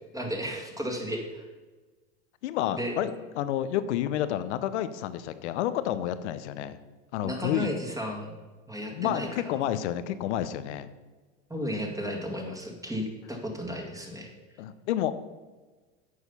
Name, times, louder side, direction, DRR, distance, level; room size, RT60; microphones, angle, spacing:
voice 1, 0.1-1.5 2.7-2.9 7.2-8.3 8.7-9.5 11.5-14.3, equal, 10° right, 1 dB, 2.0 m, -34 dB
voice 2, 2.4-6.8 7.1-7.7 8.9-10.9 14.6-15.1, left 11 dB, 80° left, 13 dB, 0.8 m, -30 dB
9.5 x 6.4 x 5.5 m, 1.3 s
hypercardioid pair, 100°, 34 cm